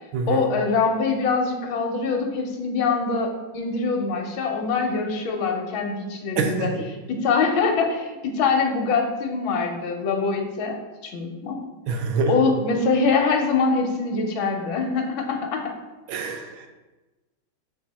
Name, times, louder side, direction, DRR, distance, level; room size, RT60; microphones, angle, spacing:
voice 1, 0.3-6.7 7.1-10.8 11.0-11.6 12.3-15.6, left 4 dB, 75° left, 2 dB, 1.6 m, -23 dB
voice 2, 6.4-6.8 11.9-12.3 16.1-16.7, right 4 dB, 75° right, 5 dB, 1.5 m, -25 dB
6.7 x 4.4 x 4.2 m, 1.2 s
omnidirectional pair, 2.3 m